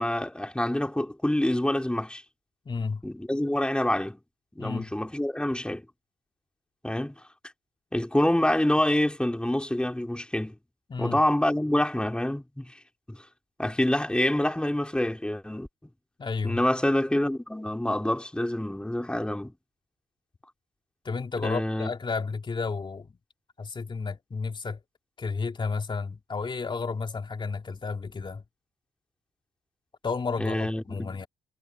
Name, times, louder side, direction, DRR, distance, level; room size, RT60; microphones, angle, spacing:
voice 1, 0.0-2.2 3.0-4.2 4.5-5.8 6.8-7.3 7.9-10.6 11.0-12.7 13.1-13.2 13.6-15.7 16.4-19.5 21.4-21.9 30.4-31.1, left 1 dB, 5° left, 3.6 m, -26 dB
voice 2, 2.6-3.0 4.6-4.9 10.9-11.2 16.2-16.6 21.0-23.2 23.6-24.8 25.2-28.4 30.0-31.3, left 4 dB, 35° left, 2.9 m, -32 dB
supercardioid pair, 60°, 14 cm